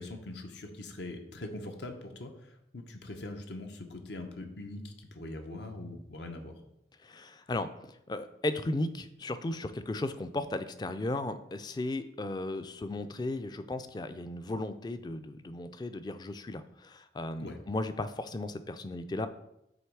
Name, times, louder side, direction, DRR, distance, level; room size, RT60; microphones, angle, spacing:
voice 1, 0.0-6.5 17.4-17.6, left 2 dB, 75° left, 4 dB, 0.8 m, -42 dB
voice 2, 7.0-19.3, left 2 dB, 25° left, 11 dB, 0.3 m, -35 dB
7.8 x 3.0 x 4.7 m, 0.82 s
head